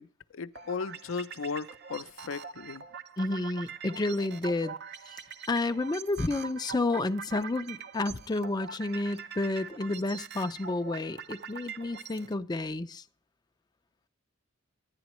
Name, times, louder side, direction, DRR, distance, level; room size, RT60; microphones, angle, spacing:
voice 1, 0.0-2.8, left 5 dB, 75° left, 0.5 m, -36 dB
sound 1, 0.6-12.3, right 6 dB, 55° right, 0.8 m, -44 dB
voice 2, 3.2-4.8 5.5-13.0, left 2 dB, 20° left, 0.5 m, -30 dB
11.5 x 9.9 x 3.0 m
head